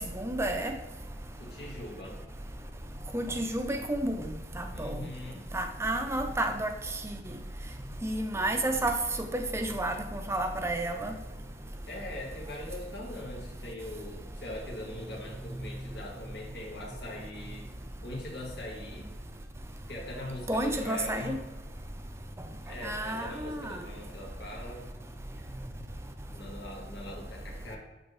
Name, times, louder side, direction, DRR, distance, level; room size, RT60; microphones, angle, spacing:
voice 1, 0.1-0.8 3.1-5.0 5.5-6.7 8.0-9.0 9.3-11.1 20.5-21.4 22.8-23.6, right 1 dB, 15° right, 5 dB, 0.6 m, -31 dB
voice 2, 1.4-2.2 4.7-5.5 11.9-17.7 18.0-19.1 19.9-21.4 22.6-24.9 26.3-27.8, left 1 dB, 65° left, -1 dB, 1.9 m, -41 dB
8.6 x 4.2 x 3.4 m, 1.1 s
head